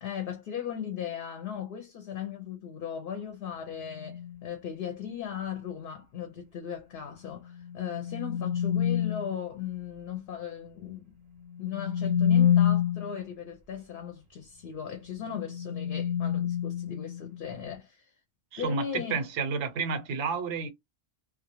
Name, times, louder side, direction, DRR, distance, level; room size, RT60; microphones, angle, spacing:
voice 1, 0.0-11.1 11.6-18.1 18.6-19.2, left 8 dB, 60° left, 0.7 m, -37 dB
sound 1, 3.9-4.4 7.5-9.3 11.5-13.2 15.1-17.5, left 9 dB, 50° right, 0.7 m, -27 dB
voice 2, 18.5-20.7, right 5 dB, 80° right, 0.9 m, -31 dB
2.3 x 2.1 x 2.9 m
omnidirectional pair, 1.2 m